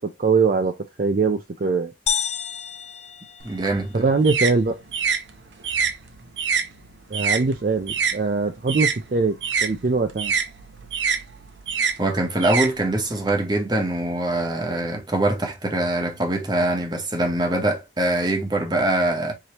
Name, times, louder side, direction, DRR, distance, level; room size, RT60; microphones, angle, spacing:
voice 1, 0.2-0.7 1.0-1.9 3.9-4.7 7.1-9.3 9.6-10.3, right 4 dB, 50° right, 0.4 m, -22 dB
sound 1, 2.1-4.0, left 8 dB, 35° left, 0.4 m, -29 dB
voice 2, 3.4-4.0 12.0-19.3, right 1 dB, 25° right, 0.9 m, -23 dB
sound 2, 3.4-8.2 8.5-13.3, right 6 dB, 90° right, 0.7 m, -26 dB
4.8 x 2.8 x 2.9 m
head